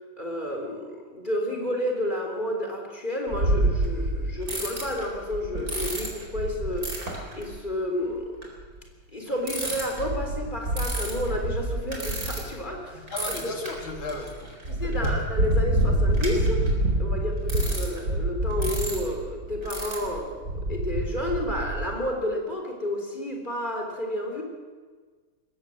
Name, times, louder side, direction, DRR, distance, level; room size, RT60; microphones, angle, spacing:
voice 1, 0.2-8.3 9.1-13.5 14.7-16.7 16.9-24.4, left 1 dB, 20° left, 2 dB, 3.8 m, -31 dB
sound 1, 3.3-7.5 8.4-8.6 9.4-12.8 13.1-21.9, right 1 dB, 40° right, 4.7 m, -27 dB
voice 2, 12.9-15.1, left 2 dB, 65° left, 2 dB, 3.5 m, -36 dB
21.0 x 16.5 x 7.8 m, 1.5 s
omnidirectional pair, 2.4 m